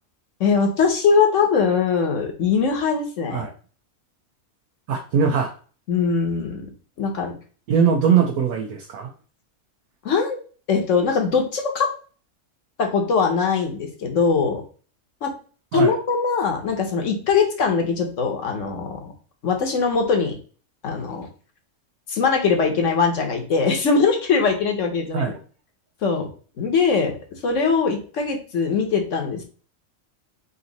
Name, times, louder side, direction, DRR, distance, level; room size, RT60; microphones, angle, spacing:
voice 1, 0.4-3.5 5.9-6.6 7.0-7.3 10.0-10.4 10.7-11.9 12.8-14.6 15.2-15.3 15.7-19.1 19.4-20.4 20.8-21.3 22.1-25.3 26.0-26.3 26.6-29.4, left 5 dB, 65° left, 4 dB, 1.3 m, -21 dB
voice 2, 4.9-5.5 7.7-9.1 15.7-15.9 25.1-25.4, right 6 dB, 80° right, 1 dB, 1.2 m, -21 dB
4.0 x 2.8 x 4.0 m, 0.39 s
omnidirectional pair, 1.5 m